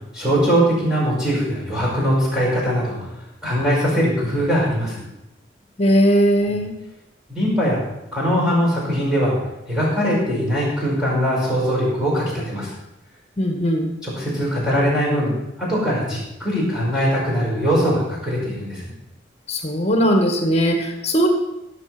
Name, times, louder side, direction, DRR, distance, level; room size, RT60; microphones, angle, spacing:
voice 1, 0.1-3.0 3.4-5.1 7.3-7.8 8.1-9.4 9.7-12.7 14.0-15.3 15.6-18.8, equal, 5° right, -6 dB, 5.4 m, -21 dB
voice 2, 5.8-6.7 13.4-13.9 19.5-21.3, equal, 35° left, 3 dB, 2.0 m, -18 dB
16.0 x 6.7 x 6.2 m, 0.88 s
head